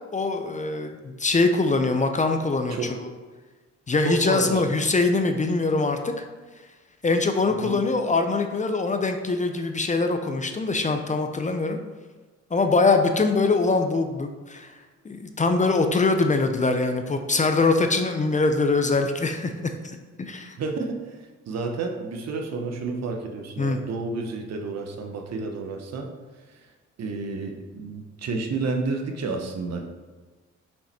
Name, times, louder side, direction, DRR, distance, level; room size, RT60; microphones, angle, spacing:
voice 1, 0.1-3.1 3.9-6.2 7.0-11.8 12.5-14.8 15.0-20.6 23.6-23.8, left 3 dB, 25° left, 6 dB, 0.6 m, -23 dB
voice 2, 4.0-4.6 7.6-7.8 20.6-21.2 21.5-26.1 27.0-30.0, right 3 dB, 60° right, 4 dB, 1.0 m, -30 dB
5.8 x 5.3 x 4.2 m, 1.3 s
cardioid pair, 90°, 30 cm